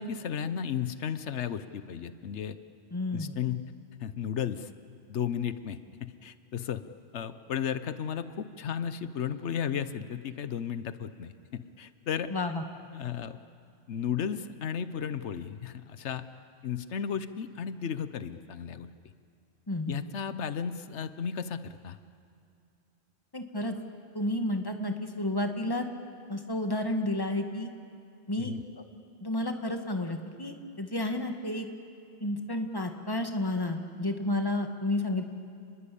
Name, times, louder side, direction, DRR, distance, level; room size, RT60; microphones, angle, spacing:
voice 1, 0.0-2.6 3.1-3.6 4.0-4.7 5.1-6.8 7.1-12.6 12.9-13.4 13.9-16.2 16.6-18.9 19.9-22.0 28.4-28.6, left 8 dB, 90° left, 12 dB, 1.2 m, -34 dB
voice 2, 2.9-3.4 12.3-12.6 19.7-20.0 23.3-23.8 24.1-25.9 26.3-27.7 28.3-28.5 29.2-31.7 32.2-35.2, left 1 dB, 20° left, 5 dB, 1.8 m, -31 dB
30.0 x 21.5 x 8.5 m, 2.5 s
omnidirectional pair, 1.1 m